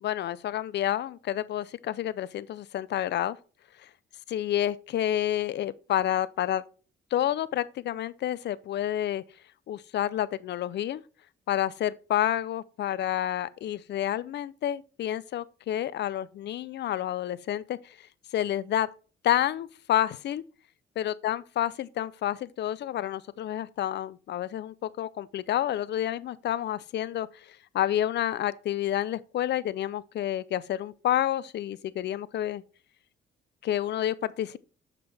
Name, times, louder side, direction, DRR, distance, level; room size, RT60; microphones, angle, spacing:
voice 1, 0.0-3.4 4.3-6.6 7.1-9.2 9.7-11.0 11.5-17.8 18.3-18.9 19.2-20.4 21.0-27.3 27.7-32.6 33.6-34.6, left 11 dB, 60° left, 0.5 m, -29 dB
7.1 x 5.8 x 3.4 m
cardioid pair, 90°, 20 cm